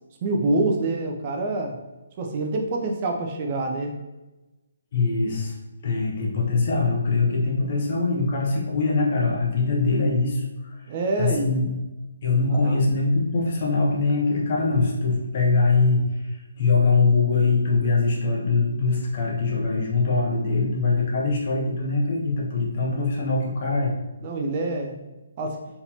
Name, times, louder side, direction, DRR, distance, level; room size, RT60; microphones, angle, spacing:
voice 1, 0.2-1.8 2.2-4.0 10.9-11.6 12.5-12.8 24.2-25.0 25.4-25.6, right 2 dB, 35° right, 1 dB, 0.6 m, -26 dB
voice 2, 4.9-5.6 5.8-11.7 12.2-23.9, left 3 dB, 45° left, -2 dB, 1.2 m, -23 dB
4.2 x 4.1 x 2.8 m, 1.1 s
figure-of-eight pair, 140°, 0 cm